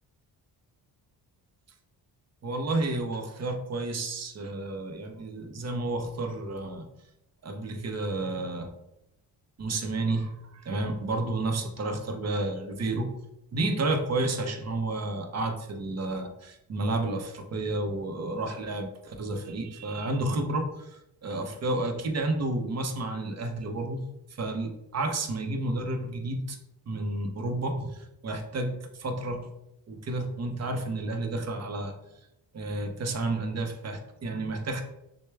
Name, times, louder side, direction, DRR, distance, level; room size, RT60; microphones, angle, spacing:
voice 1, 2.4-6.9 7.4-8.7 9.6-13.1 13.5-24.0 24.3-26.6 26.9-29.5 29.9-31.9 32.5-34.8, right 2 dB, 40° right, 5 dB, 0.7 m, -31 dB
6.5 x 2.2 x 3.3 m, 0.85 s
cardioid pair, 115°, 41 cm